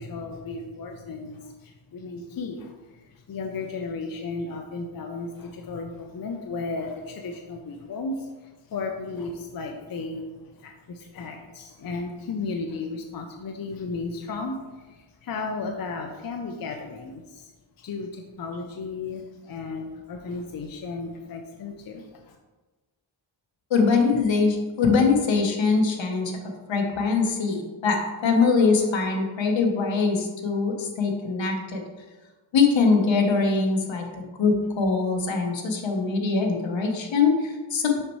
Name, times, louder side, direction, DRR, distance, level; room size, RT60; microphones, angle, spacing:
voice 1, 0.0-17.5 17.8-22.4, left 3 dB, 50° left, 3 dB, 0.6 m, -34 dB
voice 2, 23.7-26.3 26.7-31.8 32.5-34.0 34.4-38.0, left 4 dB, 70° left, 2 dB, 1.1 m, -22 dB
6.5 x 5.3 x 3.1 m, 1.2 s
wide cardioid pair, 115°, 46 cm